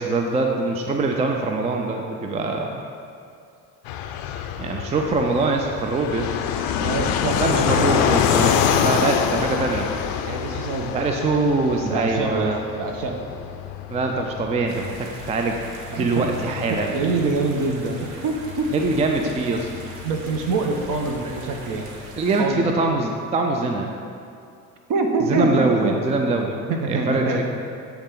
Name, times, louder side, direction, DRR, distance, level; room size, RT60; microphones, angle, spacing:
voice 1, 0.0-2.8 4.6-6.3 7.4-9.9 10.9-12.6 13.9-15.6 15.9-16.9 18.7-19.7 22.2-23.9 25.2-27.4, right 3 dB, 15° right, 3 dB, 0.4 m, -23 dB
Fixed-wing aircraft airplane, 3.9-22.2, left 8 dB, 55° left, 0.5 m, -27 dB
voice 2, 6.8-8.1 10.2-10.9 11.8-12.5 12.8-13.2 15.9-16.3 16.7-18.7 20.0-21.9 22.4-22.6 24.9-26.0 26.7-27.4, right 3 dB, 50° right, 3 dB, 0.9 m, -25 dB
sound 1, 14.7-22.4, right 2 dB, 70° right, 1.1 m, -42 dB
8.0 x 3.4 x 3.7 m, 2.5 s
hypercardioid pair, 60°, 42 cm